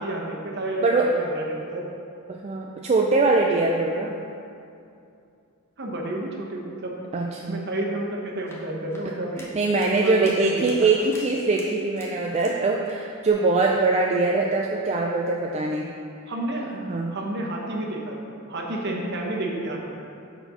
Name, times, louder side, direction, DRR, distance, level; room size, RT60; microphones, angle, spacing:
voice 1, 0.0-1.8 5.8-6.9 7.5-9.4 10.0-10.6 16.3-16.6 17.1-18.2 18.5-19.8, right 1 dB, 50° right, -1 dB, 1.0 m, -30 dB
voice 2, 0.8-1.1 2.3-4.1 7.1-7.6 9.4-15.9 16.7-17.1, right 3 dB, 30° right, 0 dB, 0.3 m, -22 dB
sound 1, 8.3-12.6 12.8-13.3, left 1 dB, 10° left, 0.9 m, -48 dB
6.8 x 4.3 x 5.5 m, 2.6 s
head